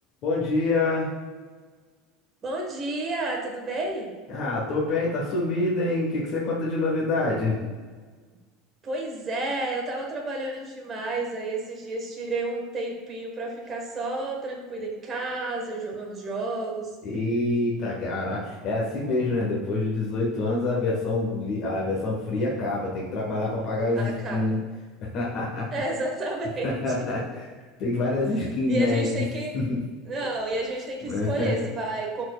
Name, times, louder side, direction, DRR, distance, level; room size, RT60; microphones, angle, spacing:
voice 1, 0.2-1.1 4.3-7.6 17.0-24.6 25.1-25.6 26.6-27.5 27.8-29.2 29.5-29.8 31.0-31.5, left 2 dB, 40° left, -4 dB, 1.2 m, -26 dB
voice 2, 2.4-4.1 8.8-16.9 24.0-24.6 25.7-26.7 27.0-27.2 28.7-29.5 30.1-32.2, right 2 dB, 20° right, 0 dB, 1.2 m, -31 dB
11.5 x 4.3 x 2.3 m, 1.4 s
cardioid pair, 170°, 0 cm